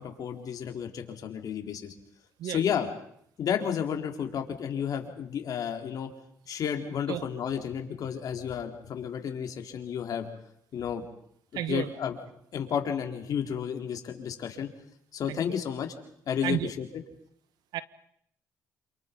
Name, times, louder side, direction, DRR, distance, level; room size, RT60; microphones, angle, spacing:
voice 1, 0.0-1.9 2.4-2.9 3.4-6.1 6.5-10.3 10.7-11.0 11.5-12.2 12.5-14.7 15.1-15.9 16.3-16.9, left 8 dB, 65° left, 4 dB, 4.3 m, -32 dB
voice 2, 11.5-12.0 15.3-15.5 16.4-16.7 17.7-17.8, right 12 dB, 80° right, 14 dB, 1.4 m, -32 dB
28.5 x 27.5 x 5.5 m, 0.71 s
supercardioid pair, 75°, 7 cm